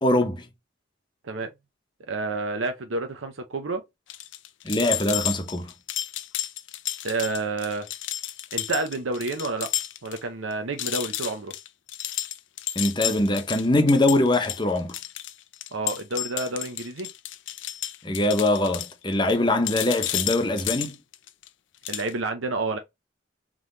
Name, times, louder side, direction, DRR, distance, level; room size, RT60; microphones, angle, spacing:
voice 1, 0.0-0.5 4.6-5.7 12.7-14.9 18.0-21.0, left 1 dB, 25° left, 0.8 m, -23 dB
voice 2, 2.1-3.8 7.0-7.9 8.5-9.7 10.0-11.5 15.7-17.1 21.9-22.8, right 3 dB, 90° right, 0.7 m, -29 dB
sound 1, 4.1-10.2 10.5-10.6 10.8-19.4 19.7-21.5 21.8-22.1, left 13 dB, 75° left, 0.5 m, -32 dB
3.8 x 3.2 x 3.8 m
head